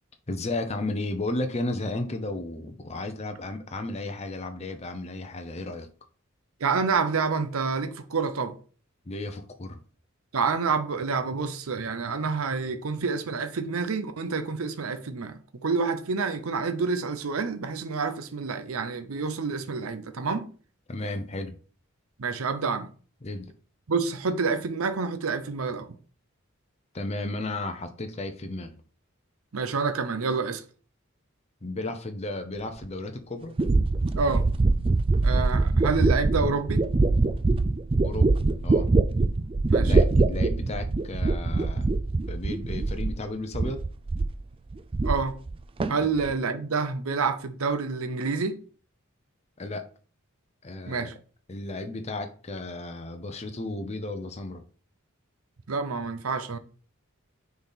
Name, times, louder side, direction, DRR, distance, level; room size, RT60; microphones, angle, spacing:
voice 1, 0.3-5.9 9.1-9.8 20.9-21.6 23.2-23.5 26.9-28.7 31.6-33.5 35.5-35.7 38.0-38.3 38.6-38.9 39.7-41.9 42.3-43.8 49.6-49.9 50.6-51.1 51.5-54.6, left 2 dB, 30° left, 0.7 m, -34 dB
voice 2, 6.6-8.6 10.3-20.5 22.2-22.9 23.9-25.9 29.5-30.6 34.2-34.4 35.2-36.8 39.7-39.9 45.0-45.4 45.9-48.6 50.9-51.1 55.7-56.6, right 4 dB, 80° right, 0.7 m, -28 dB
sound 1, 32.8-32.9 33.6-43.3 43.5-44.4 44.7-45.5 45.8-46.3, right 3 dB, 25° right, 0.3 m, -23 dB
6.7 x 4.1 x 4.0 m
head